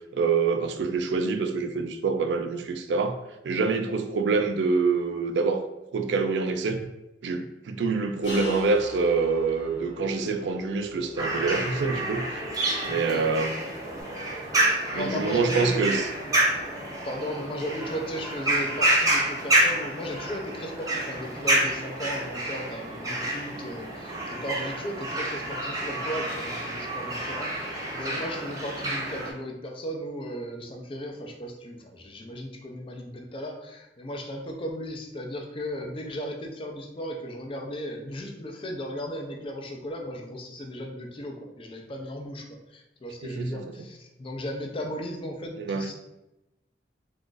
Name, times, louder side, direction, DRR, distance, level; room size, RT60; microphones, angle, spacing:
voice 1, 0.1-3.2 3.4-5.7 5.9-6.8 7.2-12.5 12.8-13.5 14.9-16.1 43.2-43.6 45.6-45.9, right 4 dB, 80° right, 7 dB, 0.4 m, -26 dB
sound 1, 8.2-14.0, left 2 dB, 85° left, 1.1 m, -39 dB
sound 2, 11.2-29.3, right 1 dB, 20° right, 0.6 m, -28 dB
voice 2, 12.9-13.3 14.9-16.4 17.0-46.0, equal, 30° left, 2 dB, 0.4 m, -36 dB
2.5 x 2.4 x 3.7 m, 0.92 s
head